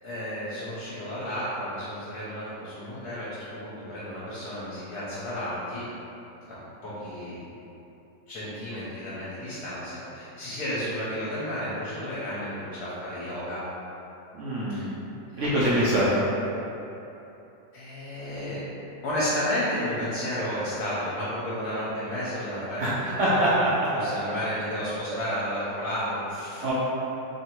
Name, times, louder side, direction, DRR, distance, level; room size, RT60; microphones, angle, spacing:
voice 1, 0.0-5.8 6.8-7.5 8.3-13.6 14.7-14.8 15.3-15.4 17.7-23.4 23.9-26.7, equal, 65° left, -9 dB, 1.2 m, -32 dB
voice 2, 14.3-15.0 15.4-16.2 22.8-22.9 23.2-23.7 26.6-26.7, right 1 dB, 65° right, -9 dB, 0.7 m, -24 dB
3.1 x 2.7 x 4.3 m, 2.9 s
omnidirectional pair, 1.9 m